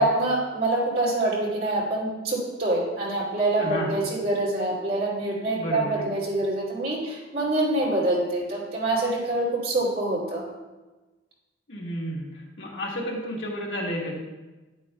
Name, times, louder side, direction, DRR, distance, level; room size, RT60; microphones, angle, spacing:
voice 1, 0.0-10.4, right 2 dB, 55° right, -5 dB, 2.7 m, -25 dB
voice 2, 3.6-3.9 5.5-6.1 11.7-12.3 12.6-14.2, equal, 70° left, -3 dB, 1.8 m, -31 dB
10.0 x 8.9 x 2.3 m, 1.2 s
head